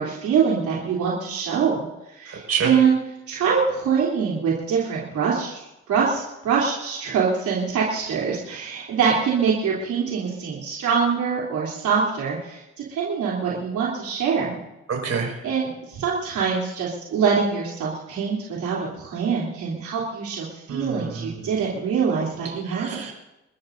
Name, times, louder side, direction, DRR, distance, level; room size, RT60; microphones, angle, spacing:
voice 1, 0.0-3.0 3.3-5.6 5.9-12.6 12.9-14.6 15.4-23.0, right 6 dB, 75° right, -5 dB, 3.4 m, -24 dB
voice 2, 2.3-2.7 14.9-15.4 20.7-21.5 22.7-23.1, right 6 dB, 55° right, 1 dB, 5.6 m, -28 dB
29.0 x 13.5 x 2.7 m, 0.93 s
cardioid pair, 90°, 30 cm